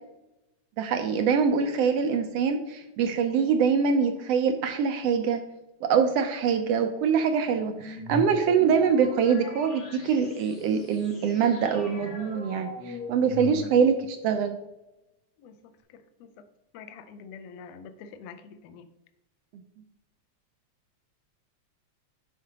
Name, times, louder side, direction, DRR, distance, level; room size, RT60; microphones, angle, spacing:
voice 1, 0.8-5.4 5.8-14.6, right 6 dB, 80° right, 7 dB, 1.5 m, -24 dB
sound 1, 7.7-14.0, left 2 dB, 45° left, 1.3 m, -40 dB
voice 2, 15.4-16.5 16.7-18.9, left 6 dB, 75° left, 8 dB, 1.6 m, -46 dB
11.0 x 5.0 x 2.8 m, 0.90 s
omnidirectional pair, 3.4 m